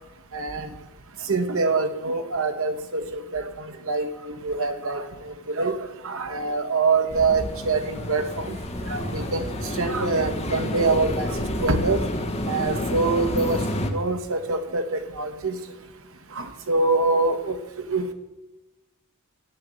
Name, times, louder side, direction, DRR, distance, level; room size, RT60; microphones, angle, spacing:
voice 1, 0.3-0.7 1.3-3.4 3.9-5.8 6.0-8.6 8.9-9.5 9.8-12.0 12.5-13.6 13.9-15.6 16.4-17.6 17.9-18.1, right 3 dB, 65° right, 8 dB, 1.3 m, -25 dB
sound 1, 7.1-13.9, left 1 dB, 30° left, 1.2 m, -29 dB
12.0 x 9.5 x 7.6 m, 1.1 s
head